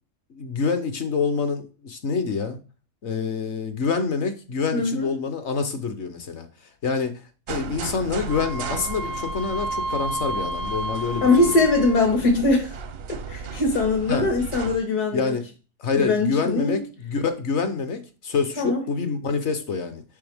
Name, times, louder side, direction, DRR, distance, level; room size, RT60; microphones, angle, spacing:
voice 1, 0.3-2.6 3.0-11.6 14.1-14.3 15.1-15.5 15.8-20.0, left 5 dB, 55° left, 0.8 m, -27 dB
voice 2, 4.7-5.1 11.2-12.7 13.3-15.3 15.9-16.8 18.6-18.8, left 2 dB, 75° left, 2.2 m, -21 dB
sound 1, 7.5-14.8, right 5 dB, 60° right, 0.6 m, -36 dB
Wind instrument woodwind instrument, 8.3-12.2, right 1 dB, 85° right, 1.3 m, -31 dB
7.0 x 5.4 x 3.4 m
omnidirectional pair, 1.7 m